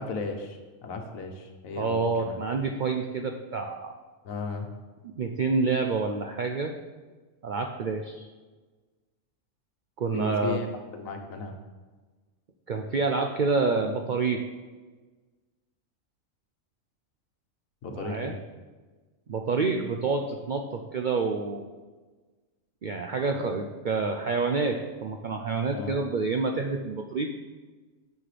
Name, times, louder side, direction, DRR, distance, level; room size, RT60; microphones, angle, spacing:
voice 1, 0.0-2.4 4.2-4.7 10.1-10.7 10.9-11.5 17.8-18.4 25.7-26.0, left 4 dB, 80° left, 4 dB, 1.4 m, -35 dB
voice 2, 1.8-4.0 5.0-6.7 7.4-8.3 10.0-10.6 12.7-14.4 18.0-18.3 19.3-21.7 22.8-27.3, right 4 dB, 70° right, 4 dB, 0.4 m, -28 dB
9.6 x 7.2 x 3.3 m, 1.3 s
omnidirectional pair, 1.4 m